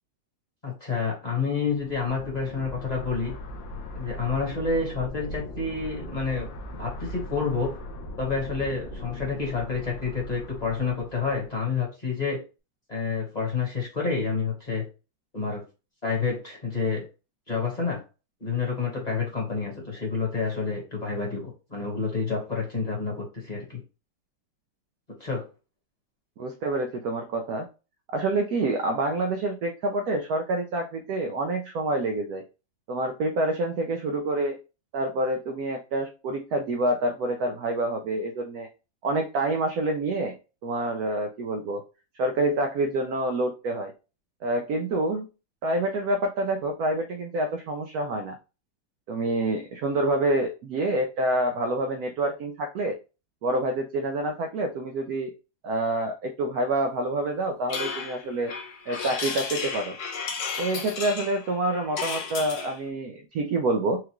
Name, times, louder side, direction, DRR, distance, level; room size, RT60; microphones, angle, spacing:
voice 1, 0.6-3.3 3.9-6.5 6.7-7.7 8.2-12.4 12.9-14.9 15.3-15.6 16.0-17.0 17.5-18.0 18.4-23.8 25.2-25.5, left 4 dB, 25° left, -2 dB, 1.3 m, -29 dB
sound 1, 1.7-11.5, left 1 dB, 80° left, 1.5 m, -39 dB
voice 2, 26.4-27.7 28.1-32.4 32.9-34.6 34.9-38.7 39.0-40.4 40.6-41.8 42.2-43.9 44.4-45.3 45.6-48.4 49.1-53.0 53.4-55.3 55.6-58.5 58.9-60.0 60.6-64.0, right 2 dB, 75° right, 4 dB, 0.9 m, -27 dB
sound 2, 57.7-62.8, left 5 dB, 65° left, 1.2 m, -33 dB
4.5 x 2.5 x 2.9 m, 0.31 s
omnidirectional pair, 2.0 m